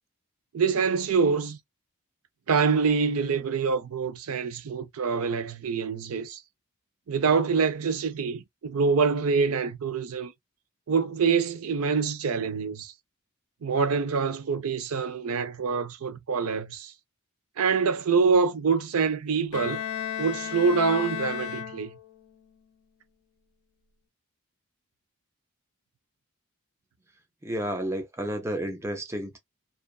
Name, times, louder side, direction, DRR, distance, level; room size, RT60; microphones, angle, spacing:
voice 1, 0.5-1.6 2.5-6.4 7.1-10.3 10.9-12.9 13.6-16.9 17.6-19.8 20.2-21.9, right 5 dB, 85° right, 0.5 m, -25 dB
Bowed string instrument, 19.5-22.2, left 9 dB, 85° left, 0.4 m, -34 dB
voice 2, 27.4-29.4, right 1 dB, 10° right, 0.4 m, -31 dB
2.5 x 2.3 x 2.2 m
head